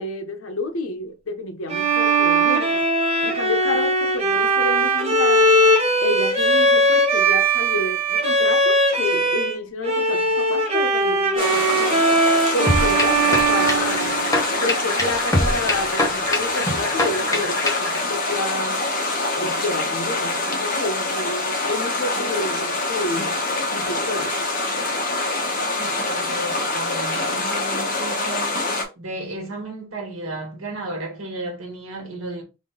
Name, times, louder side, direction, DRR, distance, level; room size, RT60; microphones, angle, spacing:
voice 1, 0.0-2.9 3.2-5.5 6.0-12.0 12.5-14.2 14.6-18.8 19.4-23.4 23.7-24.4, left 2 dB, 75° left, 0.8 m, -29 dB
Bowed string instrument, 1.7-9.6 9.8-14.6, right 1 dB, 30° right, 0.9 m, -19 dB
sound 1, 11.4-28.8, left 2 dB, 40° left, 1.0 m, -25 dB
sound 2, 12.7-18.0, left 1 dB, 15° left, 0.9 m, -24 dB
voice 2, 25.8-28.7 28.9-32.4, right 2 dB, 80° right, 1.6 m, -33 dB
3.6 x 2.6 x 3.7 m
head